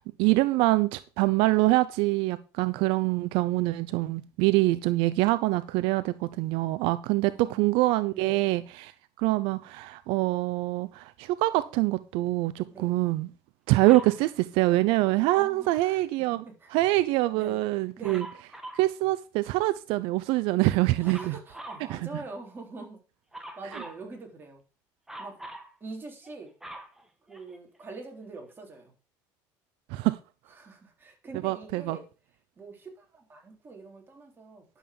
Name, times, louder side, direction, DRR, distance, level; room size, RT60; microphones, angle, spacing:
voice 1, 0.2-8.9 9.2-13.3 13.7-16.4 16.7-18.3 18.7-21.3 21.9-22.0 29.9-30.2 31.4-32.0, right 19 dB, 80° right, 0.6 m, -25 dB
voice 2, 7.2-7.8 8.1-8.5 12.7-12.9 15.3-16.9 17.3-17.6 18.0-18.2 21.0-23.0 23.6-24.6 25.2-25.4 25.8-26.5 27.3-28.9 30.5-32.1 32.6-34.8, right 3 dB, 25° right, 3.8 m, -44 dB
Dog, 13.8-14.2 18.0-18.9 21.0-21.9 23.3-24.0 25.1-25.7 26.2-27.8 28.5-28.6, right 1 dB, 5° right, 1.9 m, -43 dB
11.0 x 7.3 x 5.3 m
cardioid pair, 130°, 9 cm